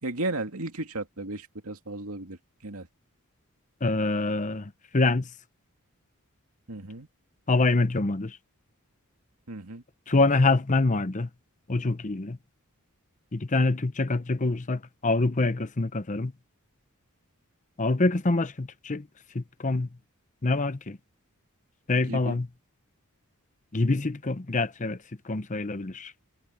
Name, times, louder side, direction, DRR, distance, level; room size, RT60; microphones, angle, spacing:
voice 1, 0.0-2.9 6.7-7.1 9.5-9.8 22.1-22.4, right 2 dB, 75° right, 2.5 m, -34 dB
voice 2, 3.8-5.3 7.5-8.4 10.1-11.3 11.7-12.4 13.3-16.3 17.8-19.1 19.3-19.9 20.4-21.0 21.9-22.5 23.7-25.0 25.2-26.1, left 3 dB, 35° left, 0.8 m, -25 dB
head